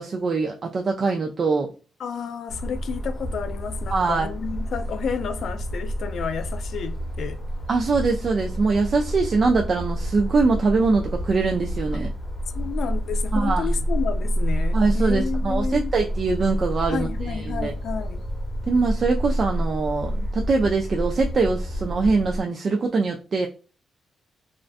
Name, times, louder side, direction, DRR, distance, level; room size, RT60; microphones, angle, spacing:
voice 1, 0.0-1.7 3.9-4.3 7.7-12.1 13.3-13.7 14.7-17.7 18.7-23.5, right 4 dB, 45° right, 0.3 m, -23 dB
voice 2, 2.0-7.4 12.5-15.9 16.9-18.2, left 6 dB, 65° left, 0.3 m, -31 dB
sound 1, 2.5-22.4, equal, 35° left, 0.7 m, -28 dB
2.4 x 2.1 x 2.5 m
cardioid pair, 105°, 0 cm